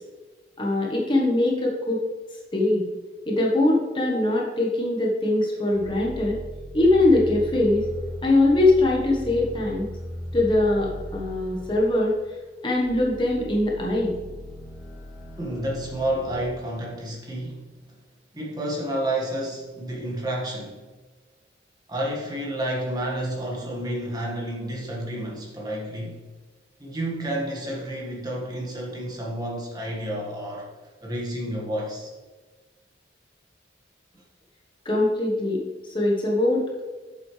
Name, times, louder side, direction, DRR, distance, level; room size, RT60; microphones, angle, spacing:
voice 1, 0.6-2.0 2.5-2.9 3.3-6.3 6.7-7.9 8.2-9.9 10.3-12.1 12.6-14.1 34.8-35.6 35.9-36.8, left 2 dB, 25° left, -2 dB, 1.2 m, -22 dB
sound 1, 5.7-16.4, equal, 5° left, 1.7 m, -38 dB
voice 2, 15.4-17.6 18.3-20.8 21.9-26.2 26.8-30.7 31.0-32.1, right 1 dB, 20° right, -3 dB, 1.6 m, -30 dB
9.4 x 7.3 x 3.3 m, 1.3 s
head